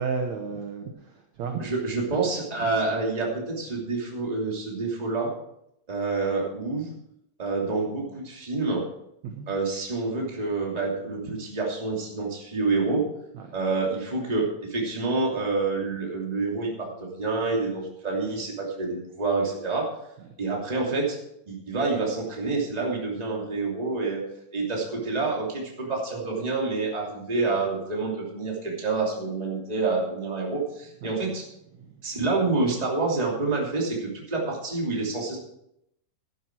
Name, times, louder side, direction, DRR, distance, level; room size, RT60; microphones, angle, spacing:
voice 1, 0.0-1.6 2.6-2.7 9.2-9.5 13.3-13.6 20.2-20.3 31.0-31.2 31.7-32.0, right 5 dB, 65° right, 4 dB, 1.9 m, -33 dB
voice 2, 1.6-5.3 5.9-6.9 7.4-8.8 9.5-13.1 13.5-19.9 20.4-21.2 21.5-24.2 24.5-31.4 32.0-35.4, right 3 dB, 10° right, -2 dB, 2.1 m, -27 dB
12.0 x 10.5 x 4.6 m, 0.79 s
omnidirectional pair, 4.4 m